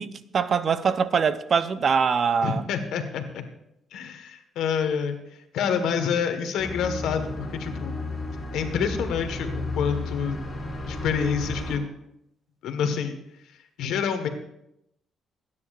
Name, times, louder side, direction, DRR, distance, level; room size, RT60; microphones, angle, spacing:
voice 1, 0.0-2.6, right 6 dB, 50° right, 0.7 m, -23 dB
voice 2, 2.4-3.4 3.9-5.2 5.5-8.0 8.5-10.4 10.9-11.8 12.6-13.2 13.8-14.3, left 7 dB, 85° left, 1.4 m, -27 dB
sound 1, 6.6-11.8, left 2 dB, 35° left, 4.2 m, -33 dB
28.0 x 9.6 x 2.5 m
cardioid pair, 90°, 0 cm